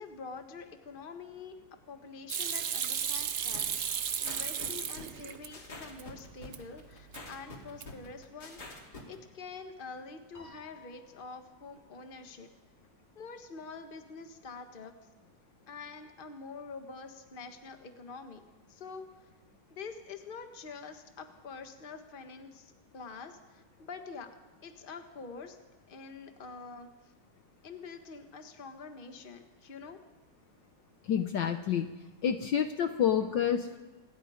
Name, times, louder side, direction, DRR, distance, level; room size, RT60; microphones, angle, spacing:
voice 1, 0.0-1.5 1.9-12.5 13.1-14.9 15.7-18.4 18.7-19.3 19.7-24.3 24.6-25.6 25.9-26.9 27.6-30.0, left 4 dB, 25° left, 6 dB, 1.4 m, -46 dB
Hands / Sink (filling or washing), 2.3-5.5 5.9-6.6 6.9-7.4 7.7-8.1, right 8 dB, 70° right, 0.6 m, -34 dB
sound 1, 3.5-9.2, left 3 dB, 45° left, 3.3 m, -46 dB
Piano, 10.3-12.8, left 4 dB, 10° right, 4.4 m, -58 dB
voice 2, 31.0-31.9 32.2-33.8, left 8 dB, 65° left, 8 dB, 1.4 m, -28 dB
26.5 x 20.0 x 5.1 m, 1.2 s
omnidirectional pair, 2.4 m